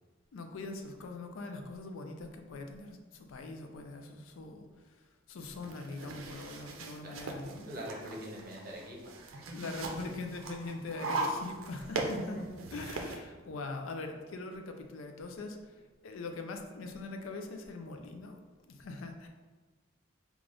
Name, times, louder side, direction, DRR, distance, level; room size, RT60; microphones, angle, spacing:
voice 1, 0.3-7.7 9.5-12.4 12.7-18.4 18.7-19.3, left 3 dB, 85° left, 5 dB, 0.4 m, -42 dB
sound 1, 5.4-13.2, right 2 dB, 90° right, 0.5 m, -39 dB
voice 2, 7.0-7.3 7.7-9.5, equal, 50° right, -2 dB, 0.8 m, -44 dB
3.3 x 2.4 x 3.8 m, 1.3 s
head